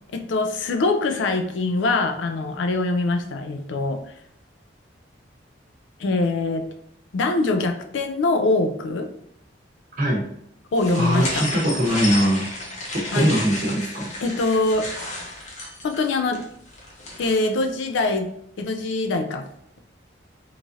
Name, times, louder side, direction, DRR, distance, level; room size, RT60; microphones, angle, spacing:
voice 1, 0.1-4.0 6.0-6.7 7.1-9.1 10.7-11.5 13.1-13.4 14.2-14.9 15.8-16.5 17.2-18.3 18.6-19.5, left 2 dB, 70° left, 6 dB, 0.3 m, -23 dB
sound 1, 10.8-17.6, left 2 dB, 35° left, 0.7 m, -32 dB
voice 2, 10.9-12.5 12.9-14.1, equal, 45° right, -3 dB, 0.8 m, -21 dB
3.1 x 2.4 x 2.6 m, 0.72 s
head